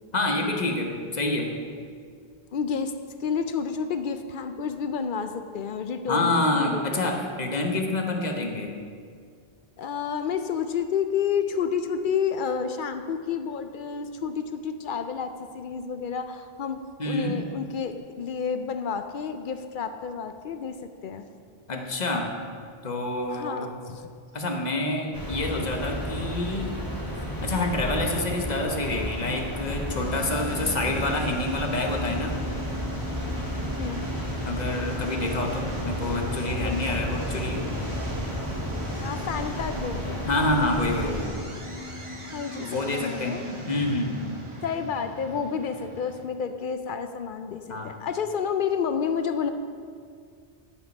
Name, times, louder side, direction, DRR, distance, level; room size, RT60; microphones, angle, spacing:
voice 1, 0.1-1.6 6.1-8.8 17.0-17.4 21.7-22.4 22.8-23.7 24.3-26.8 27.4-32.4 34.5-37.6 40.3-41.5 42.6-44.2 47.7-48.0, left 2 dB, 45° left, 2 dB, 1.0 m, -27 dB
voice 2, 2.5-2.9 3.2-6.3 6.6-6.8 7.2-7.3 9.8-20.8 21.0-21.2 23.3-24.1 33.8-34.1 36.6-36.8 39.0-40.3 42.3-43.4 44.6-49.5, left 6 dB, 60° left, 8 dB, 0.6 m, -30 dB
sound 1, 25.1-41.3, equal, 20° left, 1.3 m, -32 dB
sound 2, 29.9-46.2, equal, 30° right, 1.0 m, -37 dB
11.0 x 5.1 x 5.3 m, 2.1 s
omnidirectional pair, 1.0 m